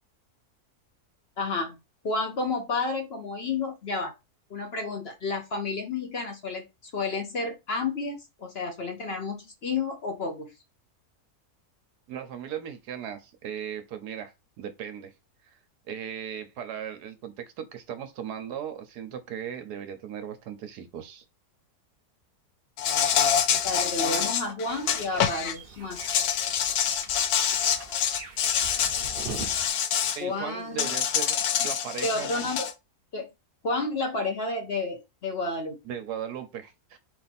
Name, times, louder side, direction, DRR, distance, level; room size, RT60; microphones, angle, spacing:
voice 1, 1.4-1.8 2.0-4.1 4.5-10.5 23.6-26.0 30.2-30.9 32.0-32.7 33.1-33.3 33.6-35.8, left 3 dB, 50° left, 0.8 m, -31 dB
voice 2, 12.1-15.1 15.9-21.2 30.1-32.3 35.8-37.0, right 9 dB, 90° right, 1.4 m, -37 dB
Insect, 22.8-25.5 25.9-30.2 30.8-32.7, left 9 dB, 75° left, 1.1 m, -26 dB
sound 1, 24.7-29.7, right 5 dB, 45° right, 0.8 m, -42 dB
4.5 x 2.6 x 4.1 m
omnidirectional pair, 1.7 m